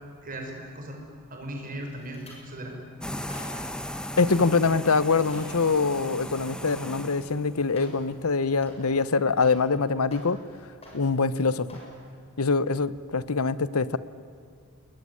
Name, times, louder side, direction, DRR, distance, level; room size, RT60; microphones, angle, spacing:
voice 1, 0.2-1.0 1.3-2.8, right 1 dB, 40° right, 2 dB, 5.7 m, -37 dB
sound 1, 1.9-2.4 3.0-3.8 4.3-4.6 5.0-5.6 6.9-7.0 7.7-8.1 8.4-9.8 10.0-10.5 10.8-11.3 11.7-12.0 12.4-12.6 13.0-13.1, left 1 dB, 30° left, 7.6 m, -48 dB
sound 2, 3.0-7.8, left 1 dB, 5° left, 1.5 m, -37 dB
voice 2, 4.2-10.4 10.9-11.7 12.4-14.0, left 4 dB, 85° left, 16 dB, 1.0 m, -24 dB
28.0 x 21.0 x 9.9 m, 2.2 s
head